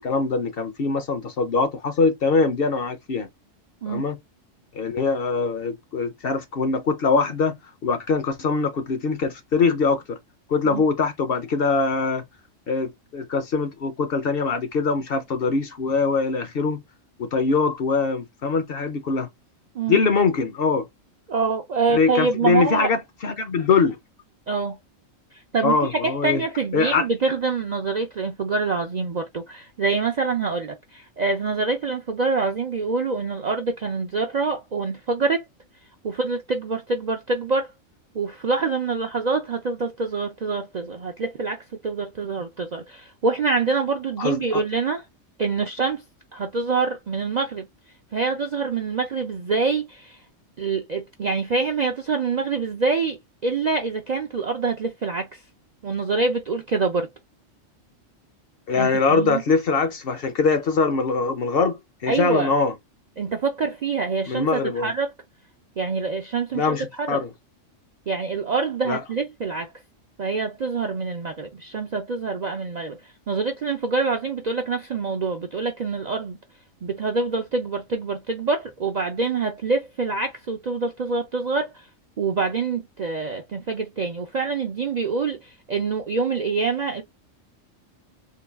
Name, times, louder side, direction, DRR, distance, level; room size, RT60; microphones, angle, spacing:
voice 1, 0.0-3.3 3.9-4.2 4.7-7.5 7.8-10.2 10.5-12.2 12.7-16.8 17.2-19.3 19.9-20.9 21.9-24.0 25.6-26.4 26.7-27.1 44.2-44.6 58.7-62.7 64.3-64.9 66.5-67.3 68.9-69.0, left 4 dB, 55° left, 0.8 m, -23 dB
voice 2, 21.3-22.9 24.5-24.8 25.3-35.4 36.0-37.7 38.1-45.0 45.4-46.0 46.3-47.7 48.1-50.2 50.6-55.4 55.8-57.1 58.7-59.4 62.1-62.5 63.2-65.1 65.8-67.2 68.1-69.7 70.2-76.4 76.8-81.9 82.2-87.0, right 4 dB, 55° right, 0.5 m, -26 dB
3.8 x 2.2 x 3.4 m
omnidirectional pair, 1.3 m